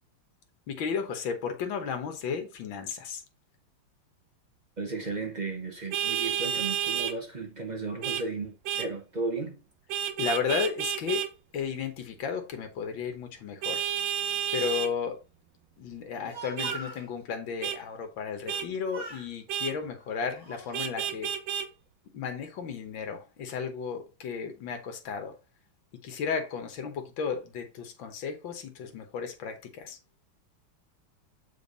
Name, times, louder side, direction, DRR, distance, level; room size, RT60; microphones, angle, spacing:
voice 1, 0.7-3.2 10.2-11.3 11.5-13.8 14.5-15.2 15.8-21.3 22.1-25.4 26.0-30.0, left 6 dB, 70° left, 1.9 m, -34 dB
voice 2, 4.8-9.6, right 3 dB, 30° right, 0.8 m, -34 dB
Vehicle horn car horn honking, 5.9-7.1 8.0-8.2 8.6-8.9 9.9-11.3 13.6-14.9 16.6-16.8 17.6-17.8 18.5-18.7 19.5-19.7 20.7-21.7, right 9 dB, 70° right, 1.3 m, -30 dB
Speech, 16.0-17.1 18.4-18.7 18.9-19.3 20.0-20.8, right 3 dB, 15° right, 3.4 m, -42 dB
7.1 x 4.5 x 4.0 m
omnidirectional pair, 2.2 m